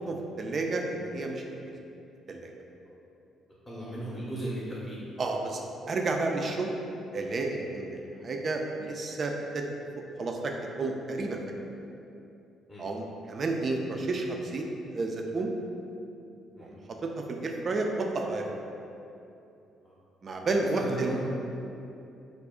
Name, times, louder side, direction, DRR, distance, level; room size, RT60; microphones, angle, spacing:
voice 1, 0.1-1.4 2.3-2.5 5.2-6.7 7.1-9.6 10.2-11.4 12.8-15.5 16.6-18.5 20.2-21.2, right 3 dB, 45° right, 2 dB, 0.3 m, -31 dB
voice 2, 3.7-5.0 12.7-12.9 16.5-16.8 19.8-19.9 20.4-20.5 20.8-21.2, right 1 dB, 15° left, -7 dB, 0.6 m, -36 dB
2.4 x 2.0 x 3.6 m, 2.8 s
hypercardioid pair, 50°, 0 cm